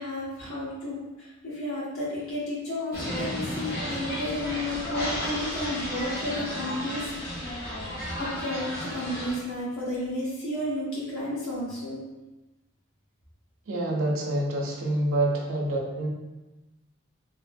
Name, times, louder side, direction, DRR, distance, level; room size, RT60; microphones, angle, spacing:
voice 1, 0.0-7.7 8.2-12.0, left 1 dB, 90° left, -7 dB, 0.9 m, -32 dB
sound 1, 2.9-9.4, equal, 50° left, 0.8 m, -33 dB
voice 2, 13.7-16.1, right 1 dB, 85° right, -2 dB, 0.5 m, -27 dB
2.8 x 2.7 x 2.5 m, 1.1 s
head